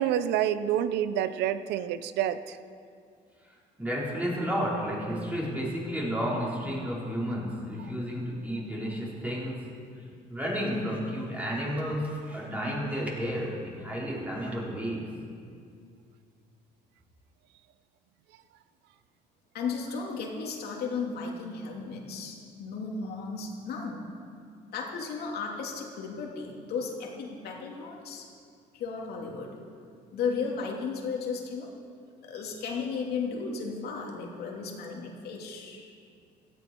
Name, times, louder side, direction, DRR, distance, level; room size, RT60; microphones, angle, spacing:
voice 1, 0.0-2.6, right 10 dB, 85° right, 13 dB, 0.7 m, -28 dB
voice 2, 3.4-9.7 10.3-15.2, equal, 10° right, -5 dB, 4.5 m, -32 dB
voice 3, 19.5-24.0 24.7-28.3 28.7-29.6 30.1-31.7 32.2-36.0, left 5 dB, 70° left, -1 dB, 2.8 m, -35 dB
17.0 x 14.0 x 4.6 m, 2.3 s
cardioid pair, 110°, 17 cm